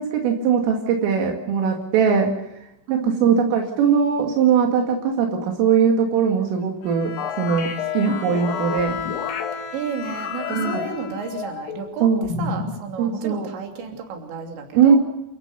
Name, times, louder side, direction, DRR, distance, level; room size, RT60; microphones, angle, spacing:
voice 1, 0.0-2.3 2.9-9.0 10.5-10.8 12.0-12.3 13.0-13.5 14.7-15.0, right 7 dB, 85° right, 2 dB, 4.8 m, -20 dB
voice 2, 2.9-3.4 9.7-15.0, right 5 dB, 65° right, 3 dB, 5.1 m, -32 dB
Bowed string instrument, 6.8-11.9, left 7 dB, 65° left, 6.2 m, -34 dB
sound 1, 7.2-9.5 10.0-11.9 12.2-12.8, left 6 dB, 80° left, 4.7 m, -30 dB
29.0 x 15.5 x 6.9 m, 0.87 s
omnidirectional pair, 5.7 m